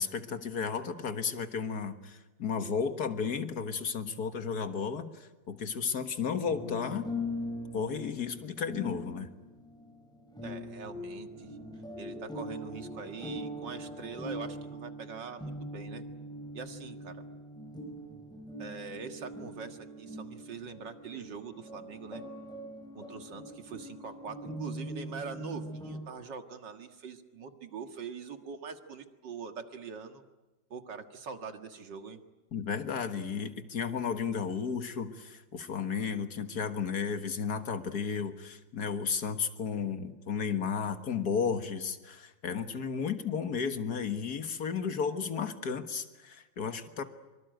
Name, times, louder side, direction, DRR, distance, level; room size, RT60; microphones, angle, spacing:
voice 1, 0.0-7.1 7.7-9.3 32.5-47.0, left 6 dB, 55° left, 9 dB, 2.0 m, -33 dB
sound 1, 6.5-26.0, left 1 dB, ahead, 5.6 m, -42 dB
voice 2, 10.4-11.6 12.0-16.0 16.5-17.2 18.6-22.2 22.9-30.2 30.7-32.2, right 5 dB, 70° right, 7 dB, 2.5 m, -43 dB
25.0 x 24.5 x 9.2 m, 1.1 s
omnidirectional pair, 2.0 m